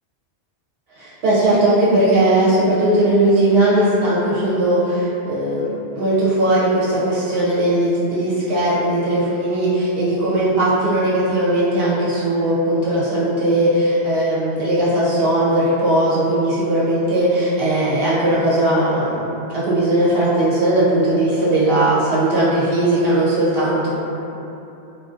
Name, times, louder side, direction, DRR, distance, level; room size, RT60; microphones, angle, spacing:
voice 1, 0.9-23.9, right 1 dB, 65° right, -9 dB, 0.7 m, -18 dB
2.5 x 2.1 x 2.4 m, 2.9 s
omnidirectional pair, 1.2 m